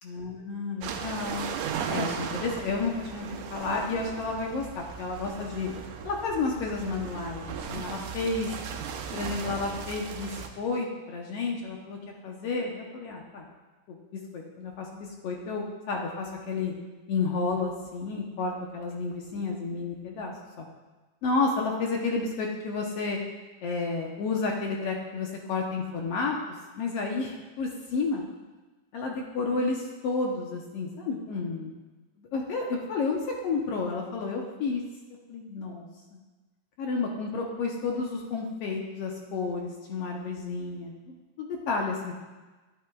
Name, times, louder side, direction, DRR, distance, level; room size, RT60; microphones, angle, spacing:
voice 1, 0.0-1.5 1.9-5.7 6.0-8.5 9.1-12.0 12.2-13.5 13.9-16.7 17.1-20.6 21.2-23.2 23.6-26.4 26.7-28.2 28.9-31.7 32.2-34.8 35.3-35.9 36.1-36.2 36.8-42.1, left 4 dB, 70° left, 0 dB, 1.6 m, -31 dB
sound 1, 0.8-10.5, right 7 dB, 85° right, 2.2 m, -37 dB
11.5 x 10.5 x 2.3 m, 1.2 s
omnidirectional pair, 3.6 m